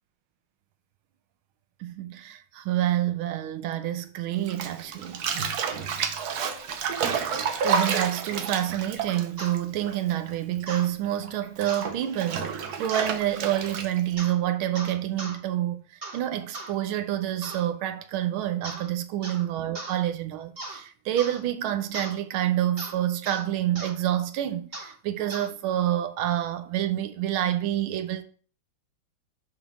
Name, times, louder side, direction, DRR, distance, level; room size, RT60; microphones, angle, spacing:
voice 1, 1.8-5.2 7.6-15.8 16.1-28.2, right 12 dB, 85° right, 1.6 m, -28 dB
Bathtub (filling or washing), 4.5-10.3 10.6-14.1, right 6 dB, 60° right, 1.1 m, -30 dB
sound 1, 9.4-9.6 10.7-10.9 11.7-11.9 12.9-13.2 14.2-14.4 14.8-15.4 16.0-16.2 16.5-16.7 17.4-17.7 18.6-18.9 19.2-19.5 19.8-20.0 20.6-20.8 21.2-21.4 21.9-22.2 22.8-23.0 23.3-23.4 23.8-23.9 24.7-24.9 25.3-25.5, right 2 dB, 30° right, 1.5 m, -38 dB
11.0 x 3.9 x 3.6 m
omnidirectional pair, 2.2 m